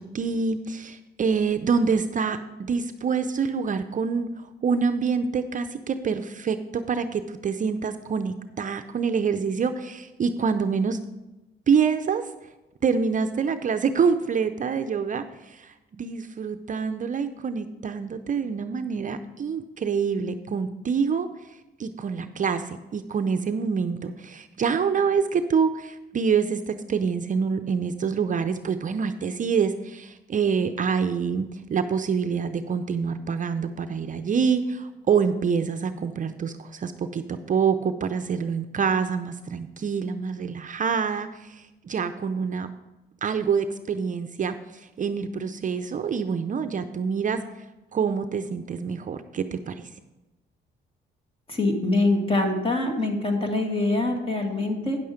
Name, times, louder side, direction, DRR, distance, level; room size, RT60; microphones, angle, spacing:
voice 1, 0.0-11.0 11.7-12.3 12.8-21.3 21.8-42.7 43.2-47.4 47.9-49.8, right 6 dB, 40° right, 9 dB, 0.6 m, -26 dB
voice 2, 51.5-55.0, left 2 dB, 25° left, 3 dB, 1.9 m, -24 dB
9.6 x 6.9 x 5.0 m, 1.0 s
cardioid pair, 90°, 20 cm